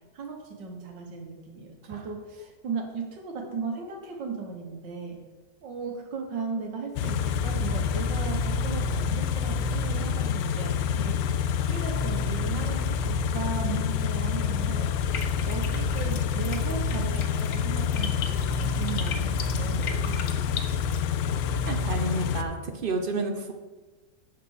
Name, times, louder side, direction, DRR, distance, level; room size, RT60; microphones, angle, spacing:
voice 1, 0.1-5.2 5.6-15.1 15.5-20.6, right 4 dB, 85° right, 3 dB, 2.0 m, -37 dB
Car / Idling, 7.0-22.4, left 6 dB, 85° left, 1.3 m, -27 dB
sound 1, 15.1-21.1, left 6 dB, 60° left, 1.0 m, -39 dB
voice 2, 21.7-23.5, right 3 dB, 55° right, 5 dB, 0.6 m, -30 dB
7.6 x 5.8 x 6.4 m, 1.2 s
omnidirectional pair, 1.9 m